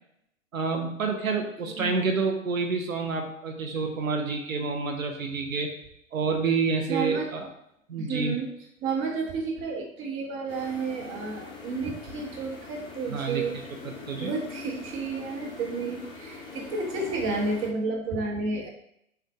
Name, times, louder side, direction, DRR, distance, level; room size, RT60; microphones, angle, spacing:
voice 1, 0.5-5.7 6.1-7.5 7.9-8.4 13.1-14.3, right 4 dB, 80° right, 3 dB, 0.8 m, -28 dB
voice 2, 1.3-1.9 6.9-7.3 8.0-8.5 8.8-13.6 14.2-18.7, right 4 dB, 30° right, 0 dB, 1.1 m, -31 dB
sound 1, 10.5-17.7, left 4 dB, 10° left, 0.8 m, -42 dB
5.6 x 2.5 x 3.5 m, 0.75 s
figure-of-eight pair, 105°, 40 cm